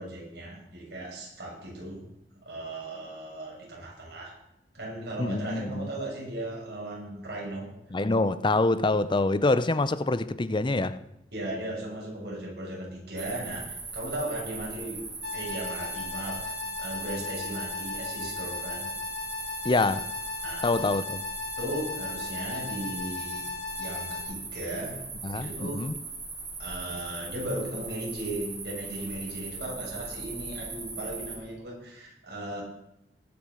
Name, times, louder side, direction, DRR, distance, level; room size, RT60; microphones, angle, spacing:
voice 1, 0.0-2.1 2.4-4.3 4.7-7.7 11.3-15.0 15.3-18.9 20.4-20.7 21.6-23.5 23.7-25.1 25.3-25.9 26.6-32.6, right 1 dB, 65° right, 6.6 m, -37 dB
voice 2, 5.2-5.9 7.9-11.0 19.6-20.0 20.6-21.2 25.2-26.0, left 2 dB, 25° left, 0.6 m, -26 dB
sound 1, 13.2-31.3, right 4 dB, 25° right, 4.2 m, -39 dB
sound 2, 15.2-24.2, left 4 dB, 80° left, 4.2 m, -37 dB
19.0 x 7.0 x 6.4 m
head